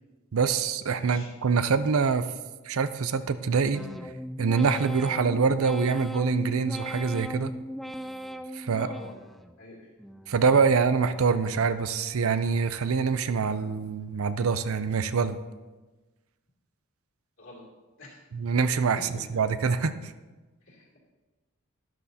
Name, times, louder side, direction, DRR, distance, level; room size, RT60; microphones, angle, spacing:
voice 1, 0.3-2.3 2.7-3.8 4.4-7.5 8.5-8.9 10.3-15.4 18.3-20.1, right 5 dB, 75° right, 12 dB, 0.5 m, -25 dB
voice 2, 1.0-1.3 8.7-9.2 9.6-9.9 17.4-17.7 18.0-18.2 18.9-19.2 20.7-21.0, left 2 dB, 60° left, -3 dB, 2.9 m, -45 dB
sound 1, 3.7-9.6 10.0-10.6 11.1-11.7 12.2-12.8 13.3-13.9 14.4-14.9, equal, ahead, 0.3 m, -39 dB
12.0 x 11.5 x 2.8 m, 1.2 s
head